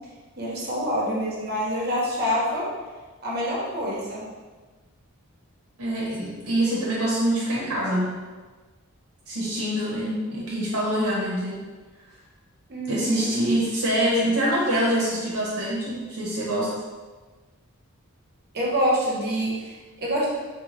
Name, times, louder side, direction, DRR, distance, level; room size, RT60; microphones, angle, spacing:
voice 1, 0.4-2.7 3.2-4.2 10.2-10.4 12.7-13.4 18.5-20.3, equal, 45° right, -4 dB, 0.8 m, -26 dB
voice 2, 5.8-8.3 9.3-11.7 12.9-16.8, right 1 dB, 75° right, -5 dB, 0.7 m, -25 dB
3.8 x 2.2 x 3.0 m, 1.3 s
head